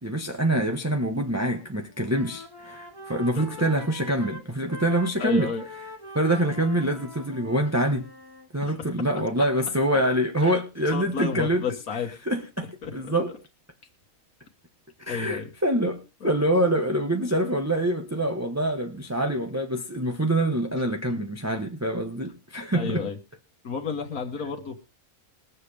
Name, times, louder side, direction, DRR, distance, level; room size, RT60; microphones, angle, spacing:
voice 1, 0.0-5.5 6.1-8.1 8.5-11.6 12.3-13.3 15.0-23.0, right 1 dB, 10° right, 1.2 m, -25 dB
Wind instrument woodwind instrument, 1.2-1.7 1.9-8.5, equal, 15° left, 1.9 m, -43 dB
voice 2, 5.2-5.7 8.6-8.7 10.4-10.6 10.9-12.2 12.8-13.4 15.1-15.5 16.2-16.3 21.1-21.2 22.7-23.2 23.6-24.8, left 5 dB, 90° left, 1.9 m, -32 dB
22.0 x 7.5 x 3.4 m
omnidirectional pair, 1.5 m